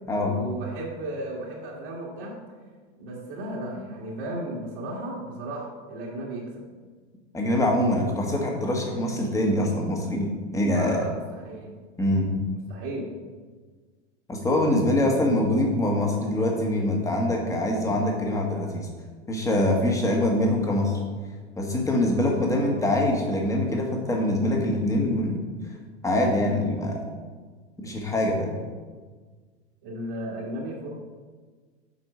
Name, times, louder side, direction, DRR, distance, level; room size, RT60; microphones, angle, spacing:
voice 1, 0.2-2.3 3.0-6.6 10.5-11.7 12.7-13.1 29.8-30.9, right 1 dB, 50° right, -5 dB, 1.7 m, -35 dB
voice 2, 7.3-11.0 12.0-12.3 14.3-18.9 19.3-20.9 21.6-25.4 26.0-27.0 27.8-28.5, left 1 dB, 10° left, 0 dB, 1.4 m, -24 dB
7.7 x 4.3 x 5.0 m, 1.4 s
hypercardioid pair, 115°, 35 cm